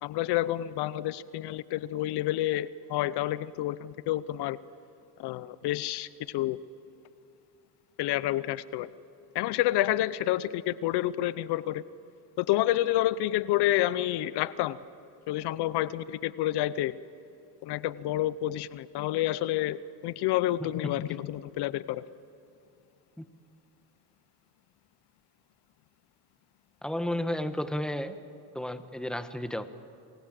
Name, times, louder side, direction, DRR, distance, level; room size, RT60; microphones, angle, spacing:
voice 1, 0.0-4.6 5.2-6.6 8.0-8.9 9.3-11.8 12.4-14.8 15.3-17.0 17.6-22.0, left 14 dB, 80° left, 18 dB, 0.8 m, -29 dB
voice 2, 26.8-28.2 28.5-29.7, left 1 dB, ahead, 10 dB, 1.5 m, -32 dB
28.0 x 21.0 x 7.6 m, 2.8 s
cardioid pair, 90°, 39 cm